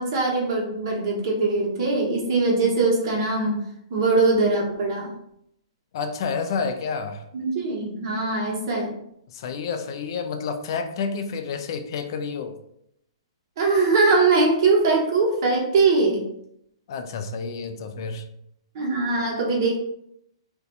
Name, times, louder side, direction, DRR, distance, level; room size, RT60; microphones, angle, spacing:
voice 1, 0.0-3.6 3.9-5.1 7.3-8.9 13.6-16.2 18.7-19.8, right 3 dB, 45° right, -1 dB, 1.0 m, -21 dB
voice 2, 5.9-7.2 9.3-12.6 16.9-18.2, left 5 dB, 55° left, 7 dB, 0.4 m, -29 dB
2.6 x 2.2 x 4.0 m, 0.75 s
hypercardioid pair, 145°, 3 cm